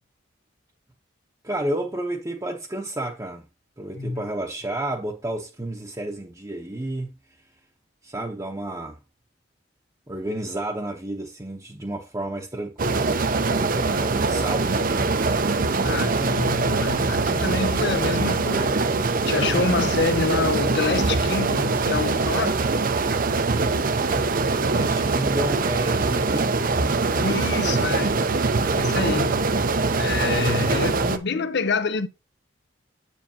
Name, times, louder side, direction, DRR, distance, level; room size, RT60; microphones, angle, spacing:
voice 1, 1.4-3.5 3.8-7.2 8.0-9.0 10.1-15.2 24.7-26.8, right 1 dB, 20° right, 0.9 m, -31 dB
sound 1, 12.8-31.2, right 3 dB, 45° right, 0.6 m, -23 dB
voice 2, 15.8-18.8 19.2-22.6 27.2-28.5 28.7-29.6 29.9-32.1, left 4 dB, 60° left, 0.7 m, -27 dB
8.3 x 7.3 x 2.8 m
head